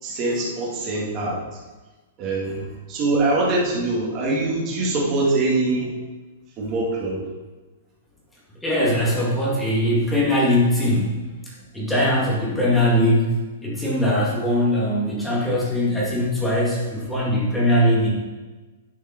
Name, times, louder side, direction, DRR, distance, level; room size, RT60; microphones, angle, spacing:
voice 1, 0.0-1.4 2.2-5.9 6.6-7.2, right 2 dB, 25° right, -4 dB, 2.3 m, -23 dB
voice 2, 8.6-11.2 11.7-18.1, left 1 dB, 5° left, -6 dB, 2.2 m, -21 dB
11.0 x 5.6 x 4.5 m, 1.2 s
hypercardioid pair, 170°, 0 cm